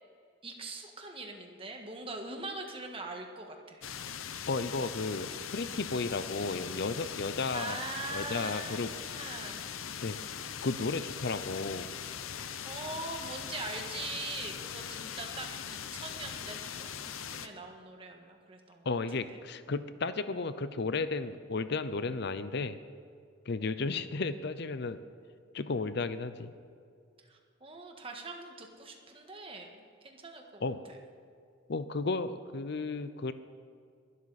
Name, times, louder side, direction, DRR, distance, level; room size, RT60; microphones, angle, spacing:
voice 1, 0.4-3.8 7.5-9.6 12.6-17.0 17.3-18.9 19.3-19.4 27.2-29.7 30.0-30.7, right 3 dB, 25° right, 2 dB, 1.6 m, -42 dB
sound 1, 3.8-17.5, left 8 dB, 85° left, 0.8 m, -41 dB
voice 2, 4.5-7.8 8.1-8.9 10.0-10.2 10.6-11.9 18.8-22.8 23.5-25.0 25.5-26.5 30.6-30.8 31.7-33.3, left 3 dB, 55° left, 12 dB, 0.6 m, -33 dB
21.0 x 12.5 x 4.2 m, 2.3 s
head